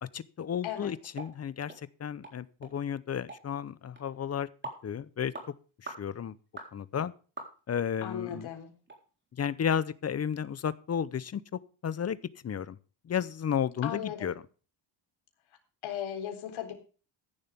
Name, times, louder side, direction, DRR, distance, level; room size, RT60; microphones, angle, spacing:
voice 1, 0.0-1.7 2.0-4.5 4.8-5.3 5.8-6.4 6.7-7.1 7.7-8.5 9.4-12.2 12.4-12.8 13.0-14.4, left 8 dB, 35° left, 17 dB, 0.7 m, -33 dB
voice 2, 0.6-0.9 8.0-8.7 13.8-14.3 15.8-16.7, left 9 dB, 80° left, 4 dB, 3.9 m, -36 dB
sound 1, 1.2-1.3 1.7-1.8 2.2-2.4 2.6-2.7 3.3-3.4 4.0-4.1 4.6-4.8 5.3-5.5 5.9-6.0 6.6-6.7 7.4-7.8 8.3-8.4 8.9-9.0 9.4-9.5, right 2 dB, 25° right, 3.9 m, -42 dB
15.5 x 11.0 x 3.6 m, 0.36 s
cardioid pair, 160°, 47 cm